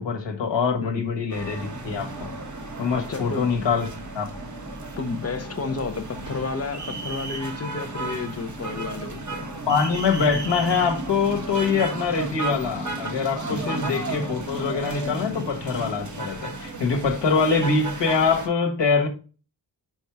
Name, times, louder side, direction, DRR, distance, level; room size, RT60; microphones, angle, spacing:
voice 1, 0.0-2.3 2.8-3.9 4.1-4.3 9.7-19.1, left 5 dB, 75° left, 1.4 m, -24 dB
sound 1, 1.3-18.5, right 2 dB, 40° right, 1.3 m, -34 dB
voice 2, 2.9-3.5 5.0-9.5 13.4-13.7 16.4-16.6 16.9-17.3, left 4 dB, 35° left, 0.8 m, -32 dB
5.4 x 4.5 x 4.6 m
wide cardioid pair, 165°, 43 cm